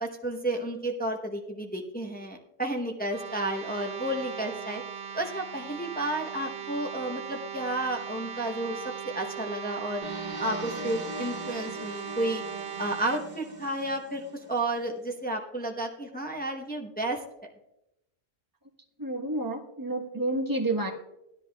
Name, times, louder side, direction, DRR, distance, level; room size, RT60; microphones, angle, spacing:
voice 1, 0.0-4.8 5.1-10.0 10.4-12.4 12.8-14.2 14.5-17.5, right 1 dB, 10° left, 1 dB, 0.8 m, -32 dB
sound 1, 3.0-13.2, right 8 dB, 65° right, 0.9 m, -39 dB
sound 2, 10.0-14.9, right 1 dB, 45° right, 1.1 m, -41 dB
voice 2, 19.0-20.9, right 2 dB, 20° right, 1 dB, 1.1 m, -29 dB
16.0 x 10.5 x 2.3 m, 0.89 s
omnidirectional pair, 1.1 m